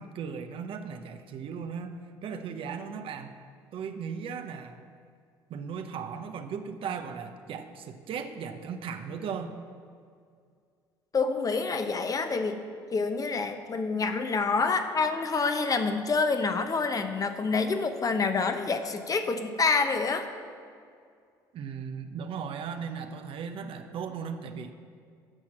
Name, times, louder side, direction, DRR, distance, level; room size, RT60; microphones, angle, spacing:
voice 1, 0.0-2.0 2.2-3.4 3.7-4.8 5.5-9.6 21.5-24.7, right 6 dB, 60° right, 8 dB, 0.8 m, -37 dB
voice 2, 11.1-12.6 12.9-20.3, left 4 dB, 35° left, 7 dB, 0.9 m, -27 dB
9.2 x 5.8 x 7.3 m, 2.2 s
hypercardioid pair, 65°, 11 cm